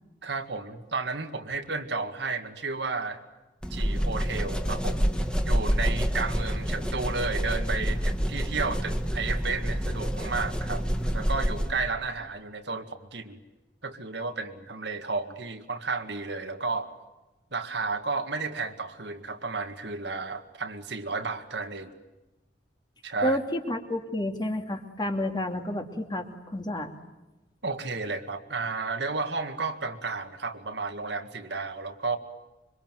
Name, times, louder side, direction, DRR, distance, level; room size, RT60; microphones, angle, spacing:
voice 1, 0.2-3.2 3.7-5.1 5.4-10.8 11.1-13.4 13.8-16.9 17.5-21.9 23.0-23.4 27.6-32.2, right 4 dB, 65° right, 7 dB, 2.0 m, -32 dB
sound 1, 3.6-11.9, equal, 5° left, 2.0 m, -28 dB
voice 2, 23.2-26.9, left 1 dB, 25° left, 4 dB, 2.5 m, -30 dB
26.0 x 24.5 x 9.2 m, 1.1 s
head